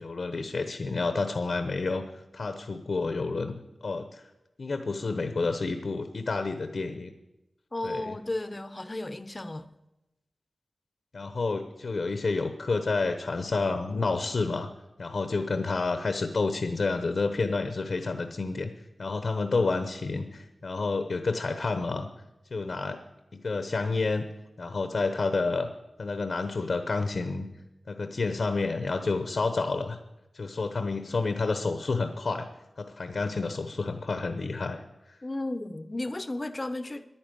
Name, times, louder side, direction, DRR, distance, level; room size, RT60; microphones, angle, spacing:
voice 1, 0.0-2.0 2.3-4.2 4.6-7.1 7.8-8.1 11.1-14.7 15.0-18.7 19.0-22.1 22.5-23.0 23.3-24.3 24.6-25.7 26.0-27.5 27.9-30.0 30.3-32.5 32.8-34.8 35.1-35.2, left 3 dB, 60° left, 1.0 m, -29 dB
voice 2, 7.7-9.7 35.2-37.1, left 2 dB, 25° left, 0.8 m, -34 dB
10.5 x 10.0 x 9.2 m
wide cardioid pair, 115°, 0 cm